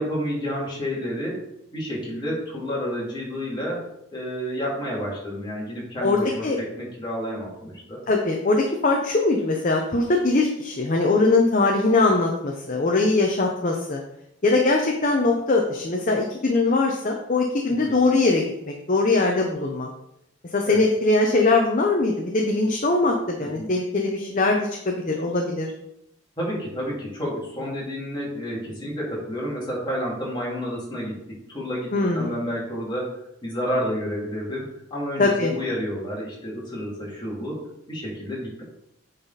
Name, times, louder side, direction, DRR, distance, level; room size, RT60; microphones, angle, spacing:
voice 1, 0.0-1.4 1.7-3.8 4.1-8.0 17.7-18.0 20.7-20.8 23.4-23.7 26.4-33.1 33.4-38.6, equal, 20° left, -5 dB, 2.6 m, -30 dB
voice 2, 6.0-6.6 8.1-14.0 14.4-19.9 20.5-25.7 31.9-32.4 35.2-35.5, left 3 dB, 40° left, 1 dB, 0.7 m, -21 dB
9.2 x 4.1 x 4.1 m, 0.79 s
head